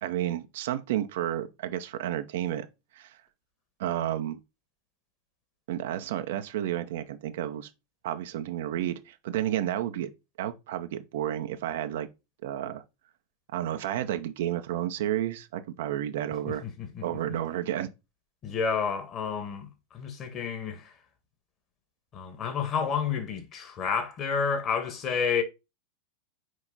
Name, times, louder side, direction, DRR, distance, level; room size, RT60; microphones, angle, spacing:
voice 1, 0.0-2.7 2.9-3.2 3.8-4.4 5.7-7.7 8.0-10.1 10.4-12.1 12.4-12.8 13.5-16.6 17.0-17.9, right 11 dB, 55° right, 0.7 m, -31 dB
voice 2, 16.5-17.1 18.4-20.9 22.1-25.4, left 6 dB, 30° left, 1.6 m, -30 dB
6.4 x 4.8 x 4.0 m
figure-of-eight pair, 90°, 0 cm